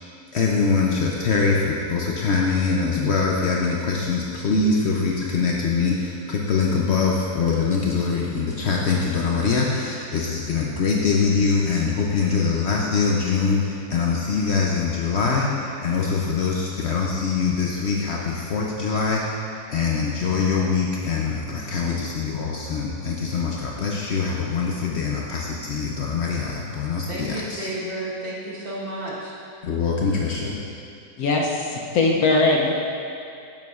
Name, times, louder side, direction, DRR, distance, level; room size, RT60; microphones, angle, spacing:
voice 1, 0.3-27.7 29.6-30.6, left 5 dB, 90° left, -2 dB, 0.5 m, -23 dB
voice 2, 27.1-29.3, right 1 dB, 35° right, -6 dB, 1.3 m, -31 dB
voice 3, 31.2-32.7, left 3 dB, 70° left, -1 dB, 1.0 m, -20 dB
10.5 x 7.1 x 2.4 m, 2.5 s
omnidirectional pair, 1.8 m